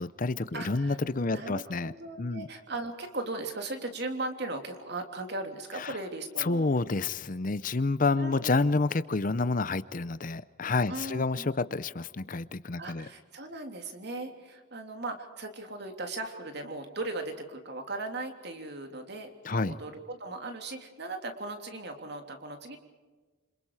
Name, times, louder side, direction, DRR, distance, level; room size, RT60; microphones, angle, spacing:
voice 1, 0.0-1.9 2.2-2.5 5.7-6.0 6.4-13.1 19.4-19.8, left 3 dB, 40° left, 0.7 m, -29 dB
voice 2, 0.5-1.0 1.3-6.7 8.2-8.5 10.9-11.5 12.8-22.8, right 2 dB, 55° right, 3.2 m, -38 dB
28.0 x 27.0 x 4.9 m
head